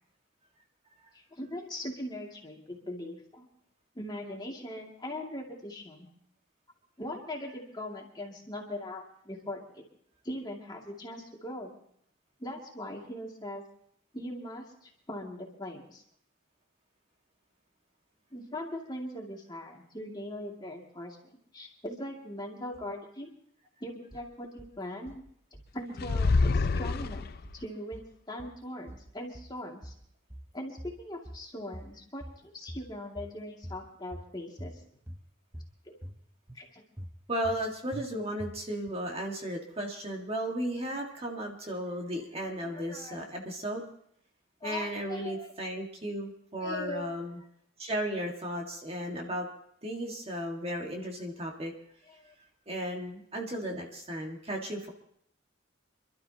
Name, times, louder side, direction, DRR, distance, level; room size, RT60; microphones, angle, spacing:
voice 1, 1.1-3.5 3.9-6.1 7.0-9.8 10.2-11.7 12.4-13.6 14.1-16.0 18.3-23.3 23.8-25.2 25.7-27.3 27.5-29.9 30.5-34.7 35.9-36.0 36.5-36.8 42.4-43.2 44.6-45.5 46.6-47.2 49.2-49.4 52.1-52.3, left 1 dB, 20° left, -1 dB, 2.4 m, -40 dB
sound 1, 24.1-24.7 25.1-25.7 26.0-26.7 27.0-27.7 27.9-28.6 28.9-29.6 29.8-30.5 30.8-31.5 31.7-32.4 32.7-33.3 33.6-34.3 34.6-35.2 35.5-36.2 36.5-36.6 37.0-37.6 37.9-38.1 38.4-38.9, equal, 10° right, 0.7 m, -45 dB
sound 2, 26.0-27.6, left 3 dB, 50° left, 0.5 m, -26 dB
voice 2, 37.3-43.8 44.6-47.4 47.8-49.5 49.8-51.7 52.7-54.9, equal, 30° right, 0 dB, 1.8 m, -35 dB
27.5 x 12.5 x 2.9 m, 0.66 s
head